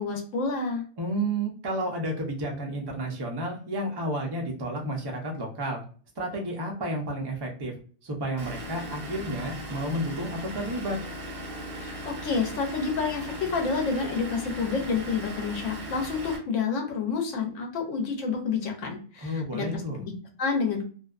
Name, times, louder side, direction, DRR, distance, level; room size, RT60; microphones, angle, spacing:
voice 1, 0.0-0.8 11.8-20.8, left 5 dB, 75° left, 2 dB, 1.0 m, -29 dB
voice 2, 1.0-5.8 6.2-7.7 8.0-11.0 19.2-20.0, right 1 dB, 35° right, 0 dB, 0.4 m, -31 dB
Vehicle / Engine, 8.4-16.4, equal, 55° right, 0.9 m, -38 dB
2.5 x 2.2 x 2.3 m, 0.41 s
omnidirectional pair, 1.3 m